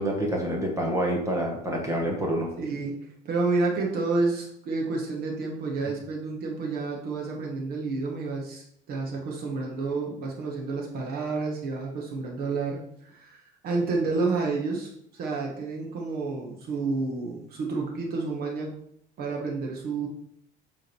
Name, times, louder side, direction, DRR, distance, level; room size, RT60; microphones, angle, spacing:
voice 1, 0.0-2.5, right 1 dB, 15° right, -1 dB, 1.1 m, -27 dB
voice 2, 2.6-18.7 19.2-20.1, right 3 dB, 50° right, 0 dB, 1.4 m, -30 dB
8.3 x 3.7 x 4.6 m, 0.70 s
cardioid pair, 165°, 21 cm